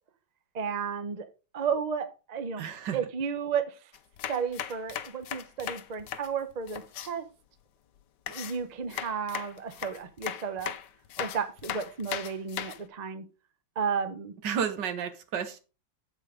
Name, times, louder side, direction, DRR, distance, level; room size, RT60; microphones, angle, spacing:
voice 1, 0.5-1.3 1.5-2.6 2.9-3.8 4.3-7.2 8.3-10.7 11.2-13.2 13.8-14.3, right 6 dB, 55° right, 10 dB, 0.4 m, -33 dB
voice 2, 2.6-3.0 14.4-15.6, right 7 dB, 70° right, 10 dB, 1.6 m, -31 dB
sound 1, 3.9-7.1 8.3-12.8, left 10 dB, 75° left, 1.3 m, -38 dB
7.7 x 4.5 x 4.9 m, 0.32 s
omnidirectional pair, 2.0 m